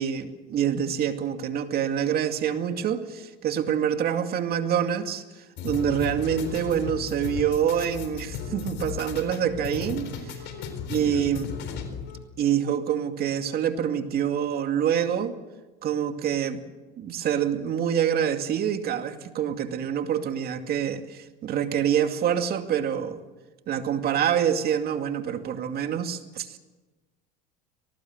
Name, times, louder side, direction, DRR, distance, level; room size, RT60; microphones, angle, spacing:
voice 1, 0.0-5.2 5.6-10.1 10.9-11.5 12.4-15.4 15.8-16.6 17.0-23.2 23.7-26.6, right 9 dB, 50° right, 7 dB, 2.4 m, -26 dB
sound 1, 5.6-12.2, left 7 dB, 60° left, 4.1 m, -35 dB
23.5 x 19.0 x 8.0 m, 1.2 s
supercardioid pair, 100°, 21 cm